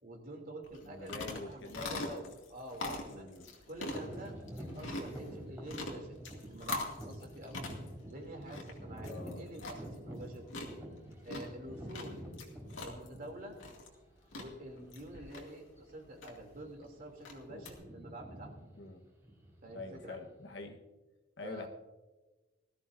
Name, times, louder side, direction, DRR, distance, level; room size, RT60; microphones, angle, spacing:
voice 1, 0.0-3.3 3.7-7.6 8.1-10.5 11.2-12.2 12.8-13.6 14.3-18.5 19.6-20.2 21.4-21.7, right 1 dB, 45° right, 2 dB, 2.9 m, -48 dB
sound 1, 0.6-17.7, left 2 dB, 75° left, 2.4 m, -44 dB
voice 2, 0.8-2.3 3.1-3.5 9.1-9.5 17.5-17.6 18.8-19.0 19.7-20.8 21.4-21.7, left 3 dB, 60° left, 5 dB, 1.3 m, -45 dB
sound 2, 3.9-13.6 14.3-14.4 15.0-15.3 15.6-15.8 16.4-17.0 17.3-20.7, equal, 15° right, 4.5 m, -48 dB
19.0 x 14.0 x 2.7 m, 1.2 s
head